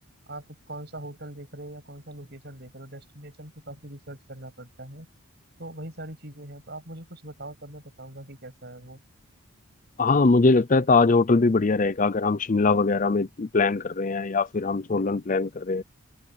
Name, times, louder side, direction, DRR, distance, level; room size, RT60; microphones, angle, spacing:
voice 1, 0.3-5.1 5.6-9.0, right 1 dB, 50° right, 8.0 m, -42 dB
voice 2, 10.0-15.8, left 3 dB, 35° left, 0.5 m, -22 dB
open air
head